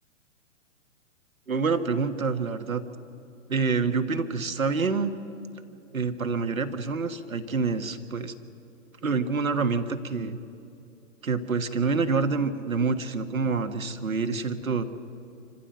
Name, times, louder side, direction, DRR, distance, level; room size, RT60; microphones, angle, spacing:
voice 1, 1.5-2.8 3.5-5.1 5.9-8.3 9.0-10.4 11.2-14.8, right 4 dB, 90° right, 7 dB, 1.6 m, -27 dB
26.5 x 15.0 x 7.8 m, 2.8 s
hypercardioid pair, 130°, 40 cm